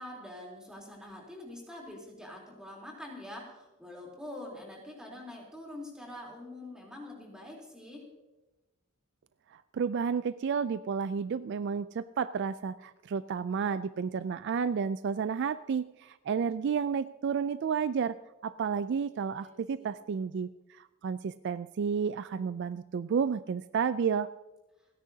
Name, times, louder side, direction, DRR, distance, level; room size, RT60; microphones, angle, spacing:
voice 1, 0.0-8.1 19.4-19.5 19.8-19.9, left 1 dB, 5° right, -2 dB, 3.5 m, -45 dB
voice 2, 9.5-18.2 18.4-24.3, right 6 dB, 55° right, 14 dB, 0.3 m, -31 dB
29.5 x 10.0 x 2.8 m, 1.0 s
head